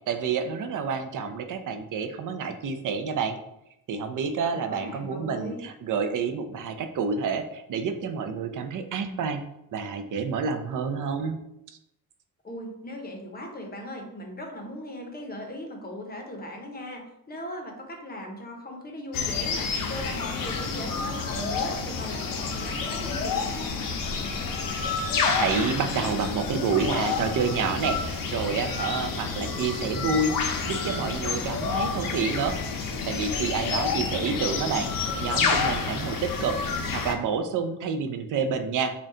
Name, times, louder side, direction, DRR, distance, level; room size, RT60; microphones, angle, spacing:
voice 1, 0.0-3.4 3.9-9.4 9.7-11.4 11.7-11.8 25.0-32.6 33.1-34.9 35.2-38.9, right 5 dB, 60° right, 8 dB, 0.5 m, -29 dB
voice 2, 4.5-5.6 12.4-23.8 33.8-34.6, left 1 dB, 25° left, 2 dB, 0.6 m, -38 dB
sound 1, 19.1-37.1, left 5 dB, 70° left, 0.6 m, -29 dB
3.9 x 2.2 x 3.6 m, 0.82 s
wide cardioid pair, 160°, 35 cm